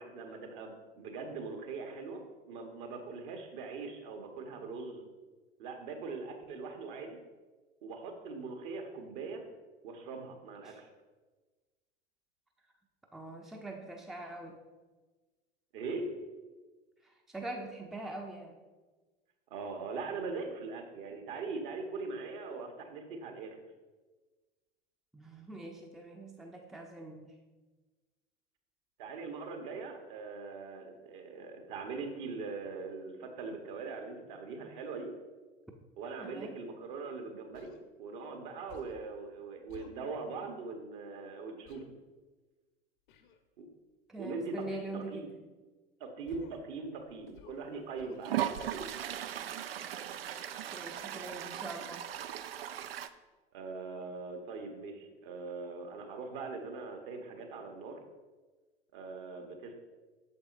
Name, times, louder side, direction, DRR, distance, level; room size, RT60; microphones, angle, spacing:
voice 1, 0.0-5.1 5.6-7.2 7.8-9.4 9.8-10.9 15.7-16.2 19.5-23.6 29.0-35.1 36.0-41.8 43.6-43.7 44.2-44.6 44.9-45.3 46.0-48.9 53.5-58.0 58.9-59.7, right 4 dB, 55° right, 4 dB, 1.2 m, -41 dB
voice 2, 13.1-14.6 17.0-18.6 25.1-27.3 36.2-36.6 44.1-45.4 49.8-52.1, right 2 dB, ahead, 2 dB, 0.5 m, -44 dB
Human voice, 37.5-37.8 38.7-39.1 39.7-40.0 41.7-41.9 43.1-43.4 44.6-44.9 46.3-46.7 47.3-47.7 48.0-48.3, left 7 dB, 55° left, 0.8 m, -54 dB
Toilet flush, 47.3-47.4 48.2-53.1, right 11 dB, 70° right, 0.5 m, -38 dB
8.4 x 7.0 x 2.5 m, 1.3 s
figure-of-eight pair, 80°, 31 cm